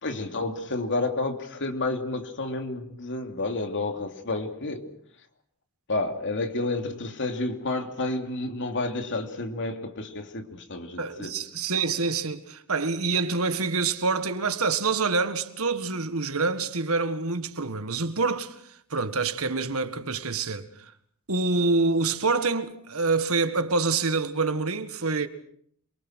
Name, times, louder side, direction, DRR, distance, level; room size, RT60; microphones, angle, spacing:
voice 1, 0.0-4.9 5.9-11.3, left 2 dB, 55° left, 2.9 m, -30 dB
voice 2, 11.0-18.5 18.9-20.7 21.3-25.3, right 4 dB, 70° right, 1.8 m, -26 dB
27.5 x 23.5 x 6.4 m
head